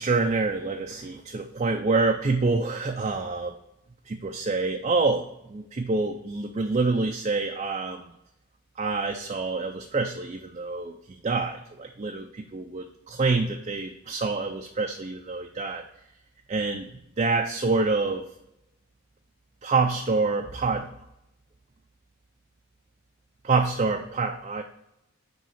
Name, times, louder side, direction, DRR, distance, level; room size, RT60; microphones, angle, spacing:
voice 1, 0.0-3.6 4.1-8.1 8.8-10.9 11.2-15.8 16.5-16.9 17.2-18.2 19.6-20.9 23.4-24.6, right 3 dB, 30° right, 4 dB, 0.4 m, -26 dB
7.3 x 3.1 x 5.7 m, 0.85 s
head